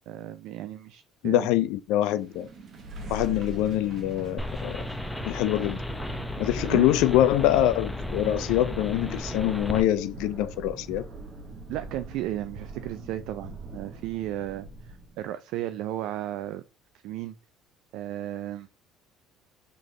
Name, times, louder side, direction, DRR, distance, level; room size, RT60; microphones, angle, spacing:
voice 1, 0.1-1.5 6.6-6.9 11.7-14.7 15.2-16.6 17.0-17.4 17.9-18.7, right 13 dB, 75° right, 0.3 m, -34 dB
voice 2, 1.2-2.5 3.1-4.8 5.2-5.8 6.4-11.1, left 13 dB, 75° left, 0.3 m, -24 dB
sound 1, 2.1-15.2, right 3 dB, 45° right, 1.2 m, -41 dB
sound 2, 4.4-9.8, left 1 dB, 5° left, 0.6 m, -34 dB
3.8 x 3.4 x 3.1 m
supercardioid pair, 90°, 0 cm